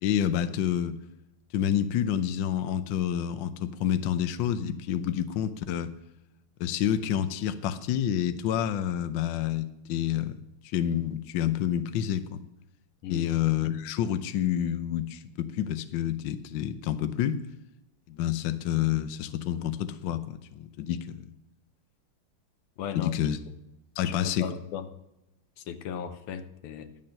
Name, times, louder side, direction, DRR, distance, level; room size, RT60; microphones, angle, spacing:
voice 1, 0.0-1.0 1.5-5.9 6.6-10.3 10.7-12.4 13.1-17.4 18.1-21.2 23.0-23.4 24.0-24.4, left 10 dB, 70° left, 11 dB, 1.3 m, -28 dB
voice 2, 22.8-23.1 23.5-23.6 24.0-24.9 25.6-26.9, left 8 dB, 90° left, 10 dB, 1.8 m, -37 dB
10.5 x 7.5 x 6.5 m, 0.92 s
omnidirectional pair, 2.4 m